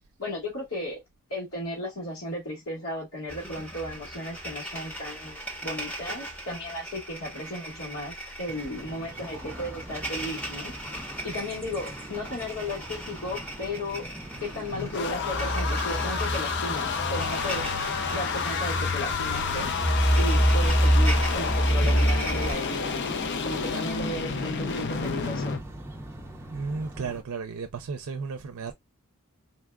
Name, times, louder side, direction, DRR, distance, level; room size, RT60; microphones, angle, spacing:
voice 1, 0.2-1.0 1.3-10.7 11.2-14.1 14.4-17.6 18.1-19.7 20.1-23.0 23.4-25.6, left 1 dB, 75° left, 1.6 m, -35 dB
sound 1, 3.3-22.5, equal, 5° left, 1.0 m, -29 dB
sound 2, 8.5-27.2, right 1 dB, 10° right, 0.6 m, -43 dB
sound 3, 14.3-25.6, left 5 dB, 55° left, 0.5 m, -30 dB
voice 2, 26.5-28.7, right 4 dB, 80° right, 0.5 m, -34 dB
4.0 x 2.3 x 2.2 m
head